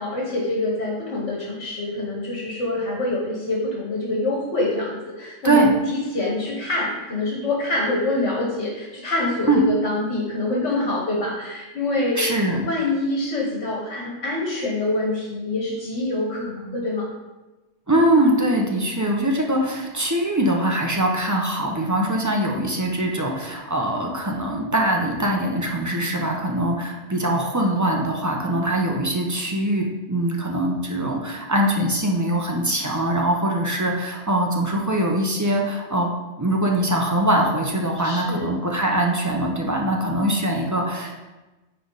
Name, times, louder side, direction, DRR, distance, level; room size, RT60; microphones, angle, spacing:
voice 1, 0.0-5.6 5.9-12.2 12.6-17.1 38.0-38.5, left 2 dB, 70° left, -3 dB, 1.5 m, -25 dB
voice 2, 12.2-12.7 17.9-36.1 36.4-41.1, right 1 dB, 20° right, 0 dB, 0.6 m, -22 dB
9.3 x 3.3 x 4.0 m, 1.1 s
omnidirectional pair, 1.3 m